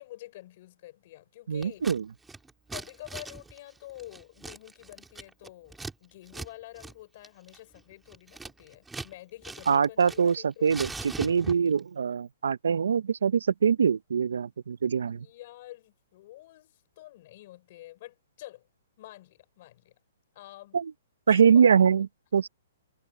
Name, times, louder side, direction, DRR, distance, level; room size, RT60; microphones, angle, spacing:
voice 1, 0.0-1.9 2.7-10.9 15.2-18.7 19.0-20.0 20.3-20.8 21.3-21.4, left 16 dB, 35° left, 3.6 m, -48 dB
voice 2, 1.5-2.0 9.7-10.9 11.2-15.3 20.7-20.8 21.3-22.1 22.3-22.5, right 7 dB, 90° right, 0.6 m, -23 dB
Scissors, 1.6-2.0 2.2-5.9 6.3-6.5 6.8-6.9 7.2-9.1 9.4-10.4 10.6-11.8, right 3 dB, 5° right, 2.5 m, -41 dB
hypercardioid pair, 175°, 0 cm